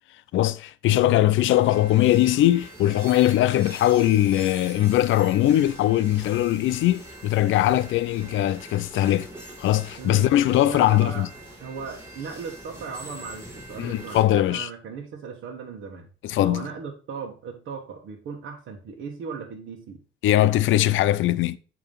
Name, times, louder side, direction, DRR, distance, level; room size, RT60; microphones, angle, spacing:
voice 1, 0.3-9.3 9.6-11.3 13.8-14.7 16.2-16.7 20.2-21.6, left 13 dB, 80° left, 0.5 m, -21 dB
sound 1, 1.5-14.2, right 1 dB, 15° right, 2.9 m, -43 dB
voice 2, 10.0-11.3 11.6-16.1 16.4-20.0, right 5 dB, 75° right, 1.2 m, -37 dB
8.4 x 3.0 x 5.2 m
cardioid pair, 90°, 20 cm